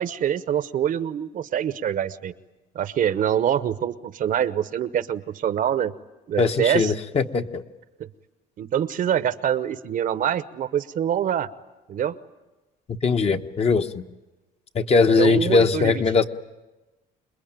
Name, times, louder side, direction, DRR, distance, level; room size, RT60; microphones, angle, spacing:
voice 1, 0.0-2.3 2.7-5.9 6.3-6.9 8.0-8.1 8.6-11.5 11.9-12.1 15.2-16.0, right 9 dB, 55° right, 14 dB, 0.9 m, -25 dB
voice 2, 6.4-7.6 13.0-14.0 14.7-16.2, left 4 dB, 35° left, 6 dB, 1.2 m, -20 dB
27.5 x 21.0 x 9.1 m, 1.1 s
cardioid pair, 110°, 17 cm